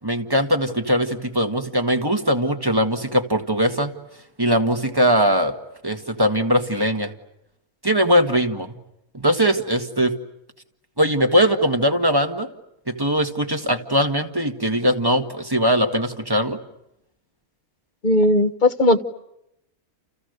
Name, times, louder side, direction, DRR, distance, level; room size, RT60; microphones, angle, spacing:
voice 1, 0.0-3.9 4.4-5.5 5.8-7.1 7.8-8.8 9.1-10.1 11.0-12.5 12.9-16.6, equal, 15° right, 5 dB, 1.9 m, -20 dB
voice 2, 18.0-19.0, left 1 dB, 35° left, 9 dB, 1.4 m, -17 dB
30.0 x 29.5 x 6.7 m, 0.84 s
omnidirectional pair, 1.4 m